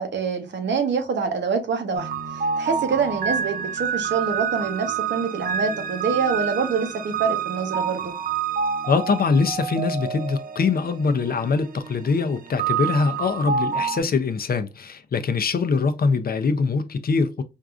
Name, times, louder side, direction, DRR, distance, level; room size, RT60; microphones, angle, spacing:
voice 1, 0.0-8.1, right 5 dB, 90° right, 0.8 m, -26 dB
sound 1, 1.9-14.0, right 7 dB, 55° right, 0.5 m, -28 dB
voice 2, 8.9-17.4, left 4 dB, 60° left, 0.5 m, -23 dB
4.5 x 2.4 x 2.3 m
wide cardioid pair, 80°, 18 cm